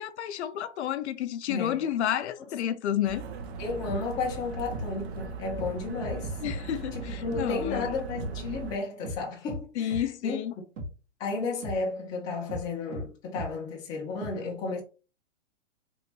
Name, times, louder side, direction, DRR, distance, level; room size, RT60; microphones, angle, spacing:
voice 1, 0.0-3.2 6.4-7.9 9.8-10.5, left 10 dB, 65° left, 0.5 m, -30 dB
voice 2, 1.5-1.9 3.6-6.4 6.9-10.4 11.2-14.8, left 4 dB, 10° left, 0.4 m, -33 dB
sound 1, 3.0-8.8, right 4 dB, 60° right, 0.6 m, -38 dB
sound 2, 3.9-4.0 4.7-4.9 5.6-5.7 6.0-6.6 7.3-7.5 8.2-8.3 9.0-9.2 9.5-9.6 9.9-10.0 10.8-10.9 11.6-11.8 12.5-12.6 12.9-13.1 13.4-13.5 14.2-14.3, equal, 75° right, 1.5 m, -35 dB
3.1 x 2.5 x 2.9 m
hypercardioid pair, 140°, 37 cm